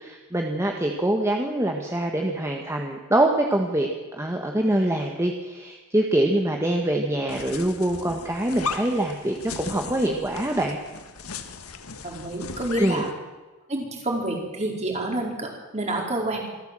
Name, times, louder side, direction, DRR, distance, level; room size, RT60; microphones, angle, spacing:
voice 1, 0.0-10.8 12.8-13.0, right 1 dB, 15° right, 2 dB, 1.6 m, -24 dB
sound 1, 7.3-13.1, left 5 dB, 90° left, 1.6 m, -37 dB
voice 2, 12.0-13.1 13.7-16.5, right 1 dB, 30° right, 0 dB, 4.7 m, -28 dB
25.0 x 14.0 x 7.8 m, 1.2 s
head